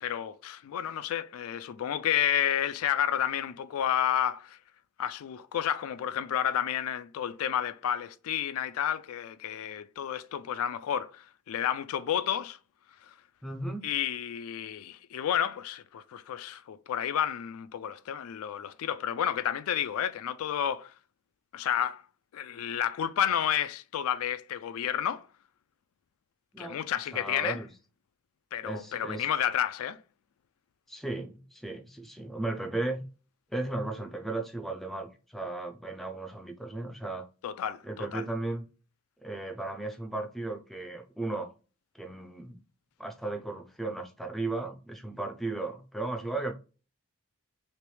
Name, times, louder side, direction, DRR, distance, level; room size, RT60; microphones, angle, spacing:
voice 1, 0.0-4.6 5.0-12.6 13.1-13.2 13.8-20.9 21.5-22.0 22.3-25.3 26.6-27.6 28.5-30.0 37.4-38.2, left 9 dB, 70° left, 0.3 m, -31 dB
voice 2, 13.4-13.9 26.5-26.8 27.1-27.7 28.6-29.3 30.9-33.0 33.5-37.3 37.8-38.6 39.2-41.5 42.0-42.6 43.0-46.5, right 2 dB, ahead, 0.4 m, -35 dB
3.2 x 2.9 x 3.1 m
head